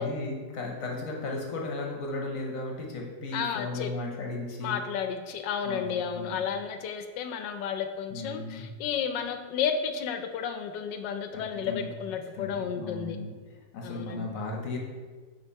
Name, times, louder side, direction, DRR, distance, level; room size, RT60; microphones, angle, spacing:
voice 1, 0.0-4.8 5.6-6.4 8.1-8.7 11.3-11.9 12.3-14.8, left 2 dB, 55° left, 0 dB, 1.2 m, -36 dB
voice 2, 3.3-3.9 4.6-13.2 13.8-14.3, left 7 dB, 85° left, 7 dB, 1.3 m, -32 dB
6.8 x 3.3 x 4.6 m, 1.5 s
omnidirectional pair, 1.9 m